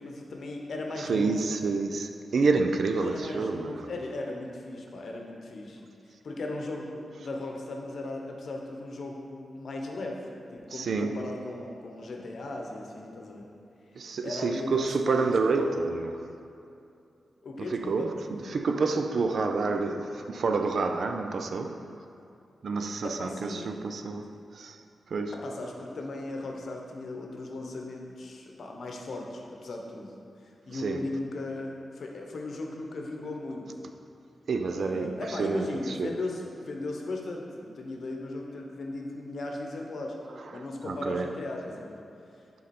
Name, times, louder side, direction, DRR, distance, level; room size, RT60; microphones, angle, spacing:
voice 1, 0.0-1.4 2.9-5.8 6.2-10.2 10.5-13.5 14.2-15.9 17.4-18.1 23.0-23.7 25.4-30.1 30.4-33.7 34.8-40.1 40.5-42.0, left 2 dB, 70° left, 0.8 m, -37 dB
voice 2, 1.0-3.9 10.7-11.3 13.9-16.4 17.6-22.0 22.6-25.4 30.7-31.0 34.5-36.2 40.4-41.5, right 4 dB, 70° right, 0.4 m, -29 dB
7.5 x 3.9 x 4.2 m
cardioid pair, 75°, 0 cm